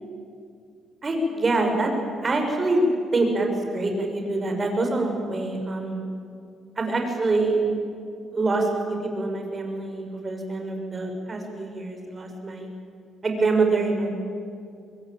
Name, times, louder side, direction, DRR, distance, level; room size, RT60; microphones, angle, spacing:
voice 1, 1.0-1.9 2.2-6.0 6.8-7.7 8.3-12.7 13.2-14.1, right 2 dB, 30° right, 3 dB, 6.4 m, -25 dB
25.0 x 22.5 x 9.0 m, 2.4 s
cardioid pair, 90°, 0 cm